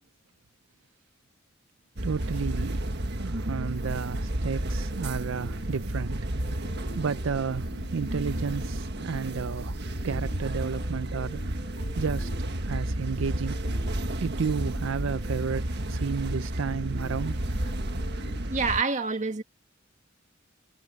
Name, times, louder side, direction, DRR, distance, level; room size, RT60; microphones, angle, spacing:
sound 1, 2.0-18.8, right 1 dB, 60° right, 1.6 m, -32 dB
voice 1, 2.0-2.8 3.2-6.2 7.0-9.8 10.0-11.4 12.0-13.9 14.2-17.4, right 5 dB, 90° right, 0.5 m, -32 dB
sound 2, 4.7-18.4, left 1 dB, 35° left, 6.9 m, -50 dB
voice 2, 18.4-19.4, right 4 dB, 40° right, 1.8 m, -27 dB
head